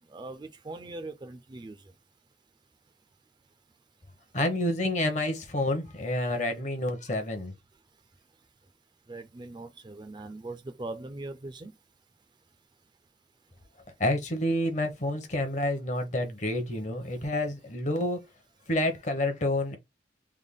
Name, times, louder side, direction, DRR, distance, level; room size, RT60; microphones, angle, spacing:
voice 1, 0.0-2.0 7.9-8.0 8.3-8.7 9.1-11.8 17.0-17.3, right 2 dB, 25° right, 0.4 m, -41 dB
voice 2, 4.3-7.5 14.0-18.2 18.7-19.8, left 1 dB, 40° left, 0.8 m, -28 dB
3.5 x 2.2 x 3.5 m
head